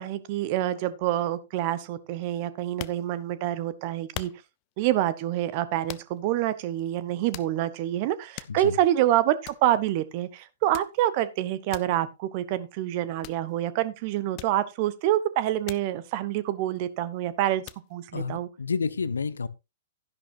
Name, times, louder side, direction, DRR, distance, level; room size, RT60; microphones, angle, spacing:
voice 1, 0.0-4.3 4.8-17.6 17.9-18.5, right 13 dB, 40° right, 0.9 m, -27 dB
sound 1, 2.6-3.5 4.1-4.7 5.9-6.3 6.8-6.9 7.3-7.9 8.2-8.9 9.2-9.3 9.4-9.7 10.7-11.1 11.7-12.0 13.2-13.5 14.4-15.0 15.7-15.9 16.3-17.1 17.6-17.9, left 16 dB, 35° left, 0.6 m, -42 dB
voice 2, 18.1-19.5, left 5 dB, 70° left, 0.8 m, -30 dB
12.0 x 10.5 x 2.6 m
figure-of-eight pair, 115°, 0 cm